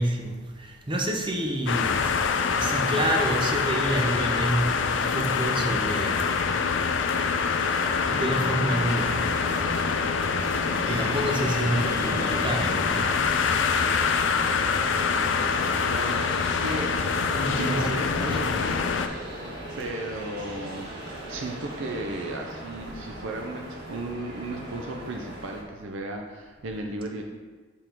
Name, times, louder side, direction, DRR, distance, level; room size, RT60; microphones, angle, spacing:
voice 1, 0.0-2.1 2.6-6.5 8.1-9.2 10.8-13.4 17.3-18.4 19.5-19.9, right 1 dB, 25° right, 2 dB, 0.7 m, -28 dB
sound 1, 1.7-19.1, left 5 dB, 60° left, 0.4 m, -25 dB
sound 2, 6.8-25.6, right 1 dB, 50° right, 1.7 m, -38 dB
voice 2, 15.9-16.9 17.5-18.8 19.8-20.9 21.3-27.2, right 2 dB, 70° right, 2 dB, 0.6 m, -35 dB
7.0 x 3.7 x 4.5 m, 1.4 s
head